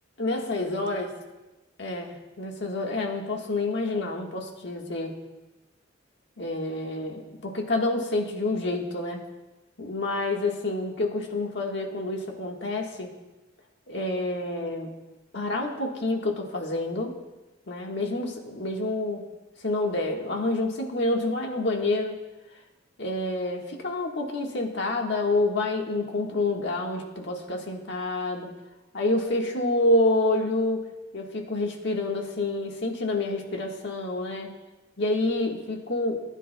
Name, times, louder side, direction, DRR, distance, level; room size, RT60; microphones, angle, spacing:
voice 1, 0.2-1.1 1.8-5.1 6.4-9.2 9.8-13.1 13.9-14.9 15.3-17.1 17.7-19.2 19.6-22.1 23.0-28.5 28.9-30.8 31.1-34.5 35.0-36.2, left 2 dB, 65° left, 1 dB, 1.5 m, -28 dB
19.0 x 9.9 x 2.3 m, 1.1 s
head